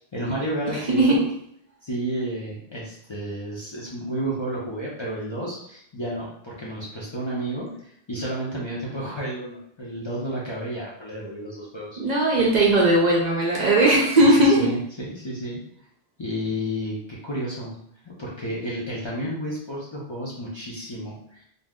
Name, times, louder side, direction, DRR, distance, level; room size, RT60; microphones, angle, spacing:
voice 1, 0.1-1.2 1.8-12.2 14.1-15.6 16.2-17.8 18.2-21.5, right 1 dB, 35° left, -6 dB, 0.5 m, -31 dB
voice 2, 0.9-1.2 12.0-14.7, right 1 dB, 50° right, -3 dB, 0.6 m, -18 dB
2.6 x 2.0 x 3.4 m, 0.69 s
omnidirectional pair, 1.1 m